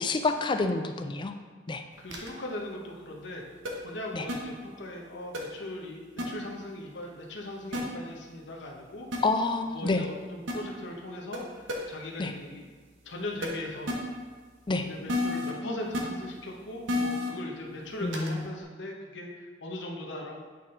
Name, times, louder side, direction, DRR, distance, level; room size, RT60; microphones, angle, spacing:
voice 1, 0.0-1.3 1.7-1.8 4.1-4.3 9.2-10.1 12.2-12.3 14.7-14.9 18.0-18.5, left 3 dB, 25° left, 7 dB, 0.4 m, -28 dB
voice 2, 2.0-3.4 3.8-9.1 9.7-12.7 13.0-13.9 14.8-20.4, left 1 dB, 65° left, 0 dB, 1.0 m, -39 dB
sound 1, 2.1-2.3 3.7-3.8 4.3-4.4 5.3-5.4 6.2-6.3 7.7-7.8 9.1-9.2 10.5-10.6 11.3-11.4 11.7-11.8 13.4-13.5 13.9-14.0 15.1-15.5 15.9-16.0 16.9-17.3 18.1-18.3, left 2 dB, 85° right, 1.0 m, -29 dB
8.3 x 4.3 x 3.7 m, 1.5 s
head